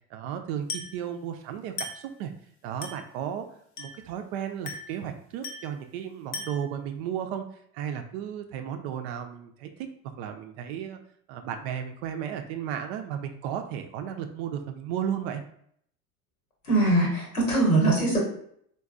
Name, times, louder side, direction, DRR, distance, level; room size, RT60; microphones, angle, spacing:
voice 1, 0.1-2.3 2.6-3.5 3.8-7.4 7.7-9.9 10.2-11.0 11.3-15.4, right 9 dB, 50° right, 7 dB, 0.5 m, -34 dB
Glass, 0.7-1.0 1.8-2.1 2.8-3.1 3.8-4.1 4.7-5.0 5.4-5.8 6.3-6.7, left 3 dB, 70° left, 0.8 m, -38 dB
voice 2, 16.6-18.2, right 2 dB, 85° left, -2 dB, 1.2 m, -22 dB
3.9 x 2.2 x 2.3 m, 0.66 s
figure-of-eight pair, 70°, 43 cm